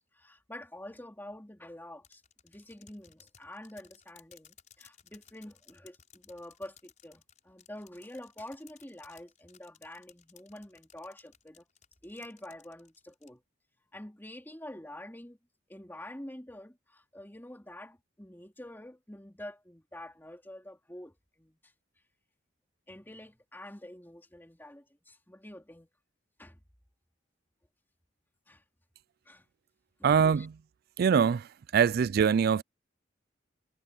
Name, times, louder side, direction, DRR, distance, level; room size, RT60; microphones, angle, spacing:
voice 1, 0.1-11.6 12.0-13.4 13.9-15.4 15.7-21.7 22.9-25.9 26.4-26.6 28.5-28.6 29.2-29.4 30.0-30.5, left 1 dB, 10° left, 2.8 m, -47 dB
sound 1, 2.0-13.3, left 8 dB, 40° left, 6.0 m, -59 dB
voice 2, 30.0-30.6 31.0-32.6, right 7 dB, 50° right, 0.3 m, -24 dB
head